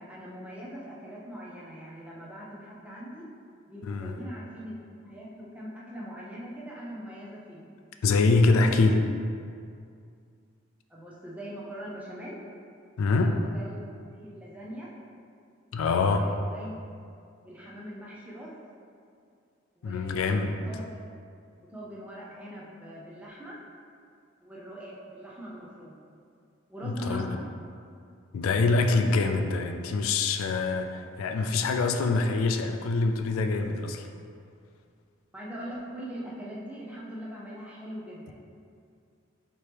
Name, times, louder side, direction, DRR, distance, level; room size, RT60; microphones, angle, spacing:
voice 1, 0.0-3.3 3.7-7.7 10.9-12.4 13.1-13.8 14.2-14.9 16.0-16.8 17.4-18.5 19.8-20.3 20.6-20.8 21.7-23.6 24.4-26.0 26.7-27.4 35.3-38.3, equal, 5° right, -6 dB, 0.5 m, -41 dB
voice 2, 8.0-9.0 13.0-13.4 15.7-16.3 19.8-20.6 26.8-27.4 28.3-34.1, left 3 dB, 85° left, 5 dB, 0.3 m, -25 dB
4.5 x 3.0 x 3.3 m, 2.3 s
head